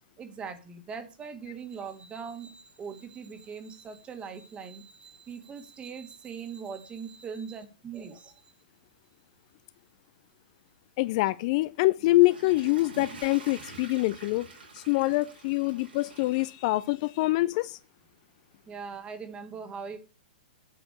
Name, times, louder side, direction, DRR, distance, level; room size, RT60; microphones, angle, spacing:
voice 1, 0.2-8.4 18.7-20.0, right 6 dB, 20° right, 1.5 m, -41 dB
voice 2, 11.0-14.5 14.7-17.8, left 19 dB, 45° left, 0.4 m, -25 dB
Water / Toilet flush, 12.0-17.3 17.7-17.8, right 3 dB, 85° right, 4.5 m, -47 dB
8.6 x 4.9 x 6.6 m
hypercardioid pair, 125°, 5 cm